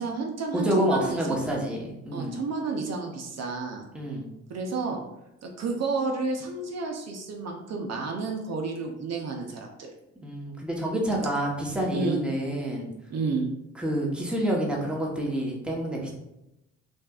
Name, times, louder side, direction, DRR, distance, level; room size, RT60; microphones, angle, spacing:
voice 1, 0.0-1.5 2.1-3.8 4.5-5.0 5.4-9.9 11.1-11.2 11.9-12.2 13.1-13.5, right 4 dB, 60° right, 2 dB, 0.7 m, -31 dB
voice 2, 0.5-2.4 3.9-4.3 10.2-12.9 13.8-16.1, right 1 dB, 5° right, -2 dB, 1.0 m, -28 dB
6.2 x 2.4 x 2.4 m, 0.89 s
cardioid pair, 90°, 30 cm